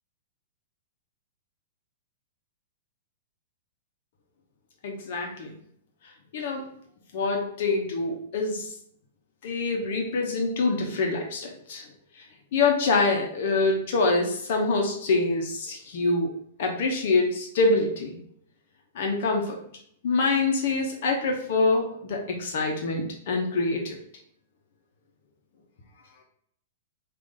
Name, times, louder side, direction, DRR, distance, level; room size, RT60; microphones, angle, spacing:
voice 1, 4.8-5.6 6.3-6.7 7.1-8.8 9.4-11.9 12.1-12.3 12.5-16.3 16.6-18.2 18.9-19.6 20.0-24.0, left 3 dB, 55° left, 1 dB, 0.8 m, -25 dB
4.9 x 2.5 x 3.8 m, 0.66 s
hypercardioid pair, 165°, 0 cm